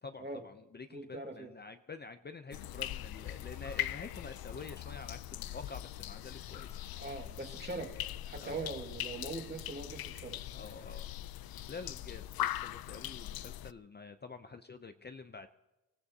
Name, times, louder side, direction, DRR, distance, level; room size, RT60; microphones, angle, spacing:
voice 1, 0.0-6.8 8.4-8.7 10.5-11.1 11.7-15.5, left 4 dB, 30° left, 8 dB, 0.6 m, -48 dB
voice 2, 0.9-1.5 7.0-10.4, right 3 dB, 30° right, 3 dB, 2.1 m, -42 dB
sound 1, 2.5-13.7, left 13 dB, 90° left, 0.5 m, -41 dB
25.0 x 17.0 x 2.8 m, 1.0 s
wide cardioid pair, 120°, 35 cm